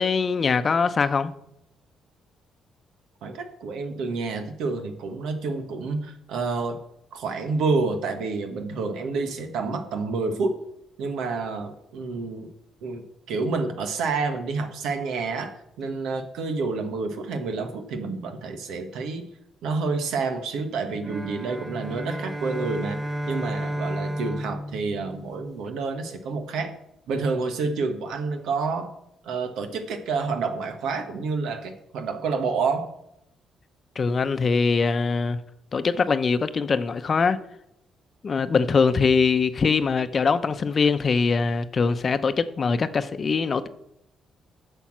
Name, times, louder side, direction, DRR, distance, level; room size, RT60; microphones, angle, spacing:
voice 1, 0.0-1.3 34.0-35.4 35.7-37.4 38.2-43.7, left 5 dB, 40° left, 0.7 m, -22 dB
voice 2, 3.2-6.8 7.1-10.6 11.0-12.5 12.8-19.3 19.6-26.7 27.1-28.9 29.2-32.9, right 4 dB, 85° right, 1.4 m, -29 dB
sound 1, 21.0-25.7, equal, 15° right, 0.7 m, -32 dB
10.0 x 7.0 x 6.1 m
cardioid pair, 90°, 0 cm